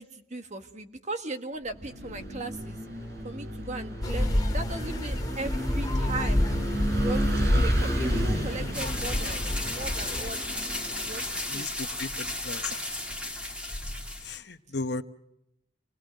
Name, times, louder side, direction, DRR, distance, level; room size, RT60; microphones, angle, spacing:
voice 1, 0.0-2.8 3.2-6.4 7.0-10.4 11.0-11.2 11.5-11.7, right 2 dB, 40° right, 7 dB, 1.6 m, -37 dB
Vehicle / Engine, 1.7-11.5, right 1 dB, 55° right, 6.9 m, -34 dB
sound 1, 4.0-10.3, left 1 dB, 20° left, 1.9 m, -28 dB
sound 2, 8.7-14.4, left 1 dB, 5° right, 2.3 m, -34 dB
voice 2, 11.5-12.8 14.2-15.0, left 3 dB, 60° left, 10 dB, 1.0 m, -35 dB
28.0 x 19.5 x 6.5 m, 0.81 s
head